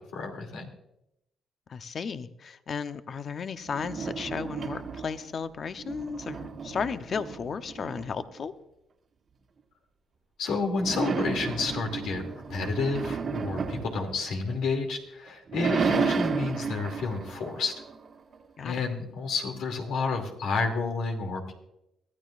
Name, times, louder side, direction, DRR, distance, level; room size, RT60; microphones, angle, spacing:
voice 1, 0.1-0.7 10.4-12.2 12.5-17.7 18.6-21.5, left 4 dB, 85° left, 2 dB, 2.7 m, -30 dB
voice 2, 1.7-8.5 18.6-18.8, left 6 dB, 50° left, 10 dB, 0.8 m, -34 dB
sound 1, 3.6-5.3 5.7-8.4 10.7-14.9 15.3-18.4, right 5 dB, 50° right, 1.5 m, -32 dB
23.0 x 14.0 x 2.5 m, 0.83 s
cardioid pair, 90°, 0 cm